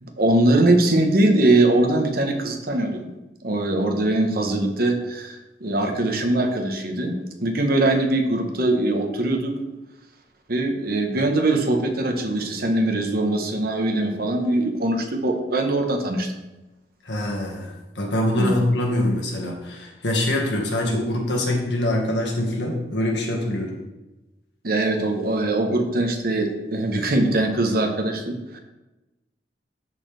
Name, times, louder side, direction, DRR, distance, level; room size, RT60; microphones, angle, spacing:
voice 1, 0.0-3.1 3.4-9.5 10.5-16.3 18.4-18.5 24.6-28.6, right 2 dB, 60° right, 4 dB, 1.2 m, -22 dB
voice 2, 17.1-23.8, left 1 dB, 80° left, 0 dB, 1.7 m, -24 dB
12.5 x 4.4 x 3.4 m, 1.0 s
head